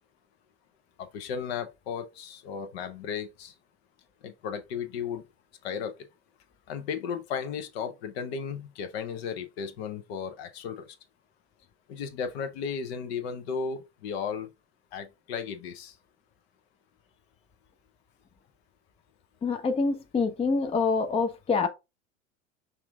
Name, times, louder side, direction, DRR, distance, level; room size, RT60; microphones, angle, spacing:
voice 1, 1.0-3.5 4.2-5.2 5.6-5.9 6.7-11.0 11.9-14.5 14.9-16.0, left 6 dB, 55° left, 0.9 m, -35 dB
voice 2, 19.4-21.7, left 4 dB, 15° left, 0.6 m, -26 dB
5.7 x 2.6 x 3.4 m
figure-of-eight pair, 70°, 37 cm